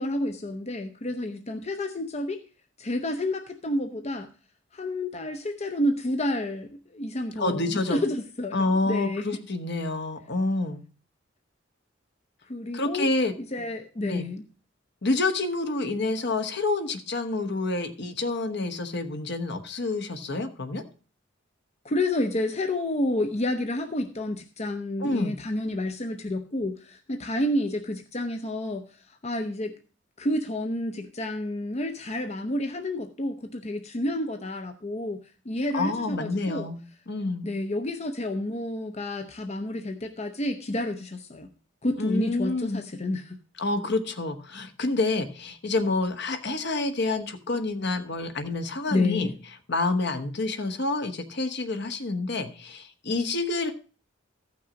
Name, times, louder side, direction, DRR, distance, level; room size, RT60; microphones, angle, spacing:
voice 1, 0.0-2.4 2.8-4.3 4.7-9.4 12.5-13.1 13.4-14.4 21.8-29.7 30.2-36.7 37.4-41.5 41.8-43.4 48.9-49.4, left 1 dB, 35° left, 6 dB, 0.7 m, -30 dB
voice 2, 7.4-8.0 8.5-10.8 12.7-13.3 14.1-14.3 15.0-20.8 25.0-25.4 35.7-36.8 37.1-37.5 42.0-42.8 43.6-49.3 49.7-53.7, left 2 dB, 60° left, 7 dB, 1.2 m, -28 dB
14.0 x 6.1 x 5.1 m, 0.38 s
head